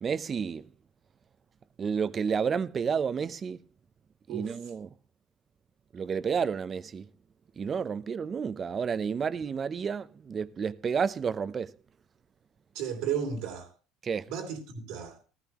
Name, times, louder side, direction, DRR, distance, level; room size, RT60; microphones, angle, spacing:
voice 1, 0.0-0.6 1.8-3.6 4.3-4.9 5.9-7.1 7.6-11.7 14.0-14.3, right 6 dB, 35° right, 0.6 m, -30 dB
voice 2, 12.7-13.7 14.3-15.2, right 7 dB, 80° right, 2.6 m, -34 dB
15.5 x 14.0 x 3.0 m
supercardioid pair, 110°, 0 cm